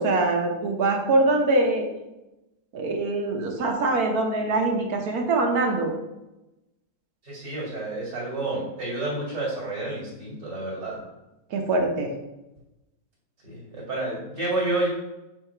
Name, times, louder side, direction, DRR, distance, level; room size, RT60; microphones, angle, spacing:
voice 1, 0.0-1.9 2.7-5.9 11.5-12.1, right 2 dB, 65° right, 3 dB, 1.4 m, -23 dB
voice 2, 7.2-11.0 13.4-14.9, right 2 dB, 80° right, -5 dB, 2.6 m, -30 dB
5.7 x 4.8 x 4.4 m, 0.97 s
omnidirectional pair, 1.8 m